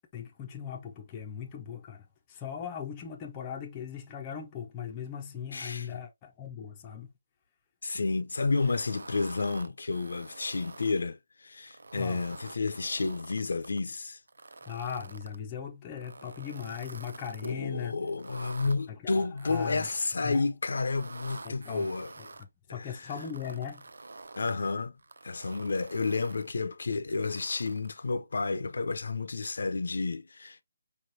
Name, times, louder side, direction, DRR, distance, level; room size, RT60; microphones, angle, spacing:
voice 1, 0.1-7.1 11.9-12.2 14.6-18.0 18.9-19.9 20.2-20.5 21.4-21.9 22.2-23.9, left 8 dB, 15° left, 0.6 m, -39 dB
voice 2, 5.5-5.9 7.8-14.2 17.4-22.1 22.8-22.9 24.4-25.0 25.2-30.6, left 3 dB, 65° left, 0.6 m, -31 dB
sound 1, 8.4-11.0 11.6-13.8 14.3-15.4 15.9-17.5 18.1-18.8 19.4-20.2 20.7-22.4 23.0-24.5 25.0-26.5 27.1-28.0, right 3 dB, 85° right, 0.5 m, -48 dB
4.9 x 3.2 x 2.7 m
hypercardioid pair, 175°, 0 cm